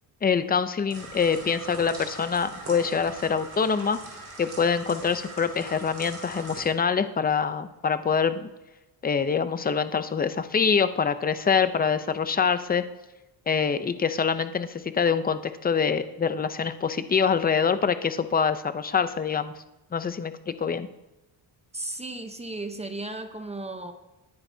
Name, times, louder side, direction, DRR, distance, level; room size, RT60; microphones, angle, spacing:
voice 1, 0.2-4.0 4.4-8.5 9.0-12.8 13.5-19.5 19.9-20.9, left 6 dB, 20° left, 11 dB, 0.5 m, -25 dB
sound 1, 0.9-6.7, right 2 dB, 35° right, 4.8 m, -41 dB
voice 2, 21.7-23.9, right 2 dB, 15° right, 7 dB, 0.8 m, -35 dB
20.5 x 10.5 x 2.7 m, 1.0 s
cardioid pair, 135°, 45 cm